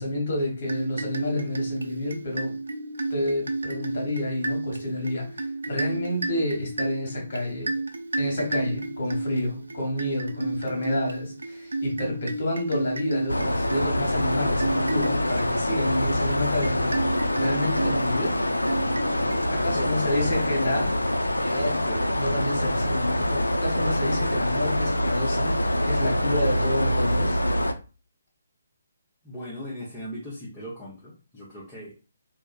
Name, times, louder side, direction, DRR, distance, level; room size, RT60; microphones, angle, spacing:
voice 1, 0.0-2.5 3.1-7.7 8.2-17.0 17.4-18.4 19.5-21.0 21.4-21.9 22.1-27.4, left 1 dB, 40° left, 0 dB, 1.1 m, -29 dB
sound 1, 0.6-19.9, right 2 dB, 65° right, 0.3 m, -32 dB
sound 2, 13.3-27.7, left 1 dB, 75° left, 0.3 m, -25 dB
voice 2, 19.8-20.7 21.9-22.1 29.2-31.9, equal, 10° left, -8 dB, 0.7 m, -39 dB
3.4 x 2.0 x 2.3 m, 0.33 s
figure-of-eight pair, 140°, 0 cm